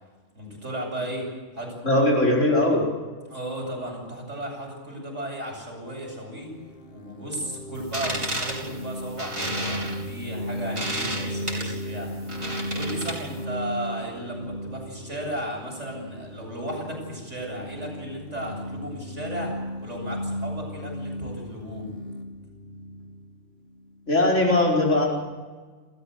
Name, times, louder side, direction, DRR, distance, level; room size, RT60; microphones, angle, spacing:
voice 1, 0.3-1.3 1.5-1.8 3.3-6.5 6.9-12.1 12.7-19.5 19.8-21.9, right 1 dB, 70° right, -1 dB, 8.0 m, -35 dB
voice 2, 1.8-2.8 24.1-25.1, left 1 dB, 75° left, -1 dB, 5.5 m, -20 dB
sound 1, 6.4-24.0, equal, 50° left, 2.6 m, -36 dB
sound 2, 7.8-13.4, right 1 dB, 25° right, 4.5 m, -32 dB
29.0 x 14.0 x 8.3 m, 1.4 s
omnidirectional pair, 1.3 m